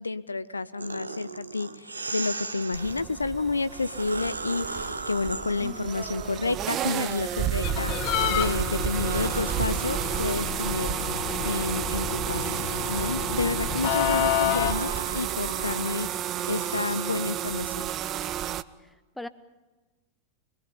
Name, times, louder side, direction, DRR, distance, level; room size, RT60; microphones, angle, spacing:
voice 1, 0.0-7.9 8.3-11.0 11.4-12.6 12.9-17.9, left 3 dB, 80° left, 16 dB, 0.6 m, -30 dB
sound 1, 0.8-3.0 3.6-7.7 8.2-17.3, right 3 dB, 80° right, 1.1 m, -39 dB
sound 2, 2.7-18.6, right 11 dB, 30° right, 0.7 m, -31 dB
voice 2, 5.6-5.9 18.8-19.3, left 1 dB, 5° left, 13 dB, 1.0 m, -41 dB
sound 3, 7.6-14.7, left 12 dB, 45° left, 1.1 m, -30 dB
25.0 x 21.0 x 5.6 m, 1.2 s
figure-of-eight pair, 90°, 0 cm